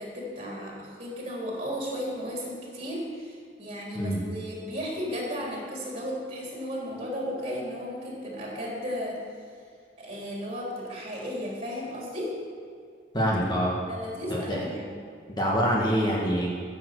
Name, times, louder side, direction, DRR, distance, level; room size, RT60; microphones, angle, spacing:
voice 1, 0.0-9.2 10.0-12.4 13.9-15.0, equal, 35° right, -3 dB, 3.5 m, -34 dB
voice 2, 13.1-13.7 14.5-14.7 15.3-16.5, equal, 25° left, -4 dB, 1.9 m, -25 dB
14.5 x 7.3 x 6.6 m, 2.2 s
head